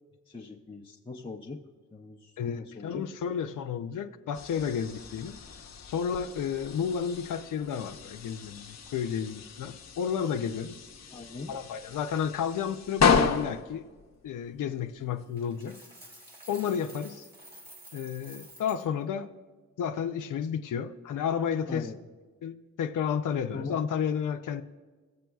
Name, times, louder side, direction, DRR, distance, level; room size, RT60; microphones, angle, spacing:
voice 1, 0.3-1.6 1.9-3.0 11.1-11.5 21.7-22.0 23.5-23.9, left 3 dB, 15° left, -3 dB, 0.7 m, -41 dB
voice 2, 2.4-5.4 5.9-10.9 11.5-13.8 14.2-15.8 16.5-17.3 17.9-19.3 19.8-21.9 22.4-24.6, left 7 dB, 90° left, 8 dB, 0.5 m, -32 dB
sound 1, 4.3-15.2, left 6 dB, 60° left, 0.8 m, -33 dB
Coin (dropping), 15.4-18.9, right 1 dB, 30° right, 2.3 m, -50 dB
17.5 x 7.6 x 2.3 m, 1.3 s
cardioid pair, 85°, 30 cm